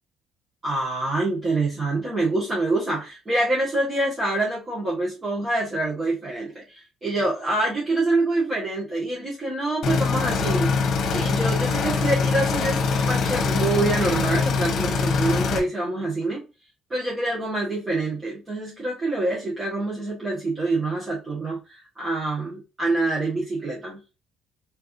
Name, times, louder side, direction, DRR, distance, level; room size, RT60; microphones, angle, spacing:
voice 1, 0.6-10.7 11.1-16.5 16.9-24.0, right 2 dB, 25° right, -7 dB, 1.7 m, -26 dB
sound 1, 9.8-15.6, left 4 dB, 55° left, 1.1 m, -23 dB
4.5 x 3.5 x 2.7 m, 0.29 s
cardioid pair, 105°, 0 cm